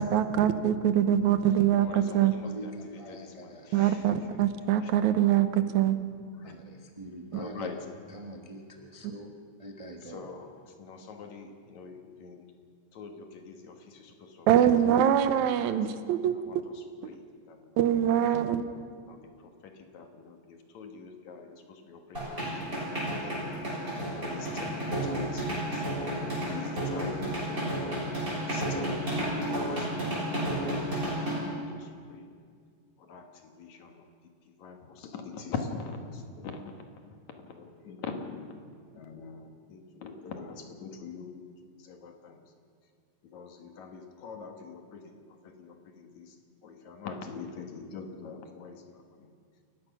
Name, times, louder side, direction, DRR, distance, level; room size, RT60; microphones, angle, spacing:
voice 1, 0.0-2.3 3.7-6.0 14.5-16.3 17.8-18.6, right 10 dB, 80° right, 11 dB, 2.3 m, -24 dB
voice 2, 1.8-4.4 4.8-4.9 6.4-6.5 7.3-8.2 10.0-12.5 12.9-14.7 15.1-15.6 15.9-17.2 17.5-17.8 19.1-27.9 28.5-32.3 33.0-34.1 34.6-36.8 37.4-38.6 39.0-41.4 41.8-42.4 43.3-45.2 45.4-46.4 46.6-49.3, left 5 dB, 75° left, 5 dB, 3.0 m, -44 dB
voice 3, 2.5-3.7 6.4-7.7 8.1-9.3 9.6-10.4, right 1 dB, 60° right, 2 dB, 0.3 m, -44 dB
sound 1, 22.1-31.4, right 1 dB, 15° right, 6.7 m, -31 dB
29.0 x 15.5 x 6.0 m, 2.1 s
omnidirectional pair, 3.3 m